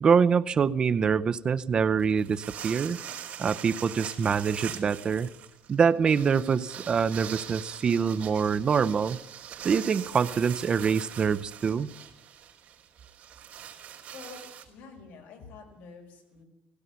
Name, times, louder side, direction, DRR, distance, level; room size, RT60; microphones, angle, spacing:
voice 1, 0.0-3.0 3.4-5.3 5.7-9.2 9.6-11.9, right 6 dB, 30° right, 13 dB, 0.6 m, -25 dB
sound 1, 2.0-14.6, right 10 dB, 45° right, 3.8 m, -42 dB
voice 2, 14.7-16.5, left 5 dB, 75° left, 4 dB, 5.0 m, -47 dB
17.0 x 16.5 x 9.3 m, 0.88 s
cardioid pair, 165°, 3 cm